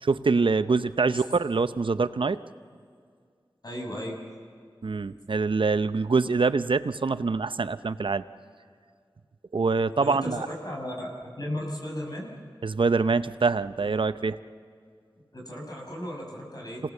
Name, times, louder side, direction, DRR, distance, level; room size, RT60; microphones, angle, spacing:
voice 1, 0.0-2.4 4.8-8.2 9.5-10.5 12.6-14.4, right 4 dB, 70° right, 13 dB, 0.7 m, -25 dB
voice 2, 3.6-4.2 10.0-11.1 11.4-12.3 15.3-16.8, left 1 dB, 45° left, -1 dB, 6.0 m, -35 dB
27.0 x 18.0 x 7.1 m, 2.2 s
wide cardioid pair, 45°, 9 cm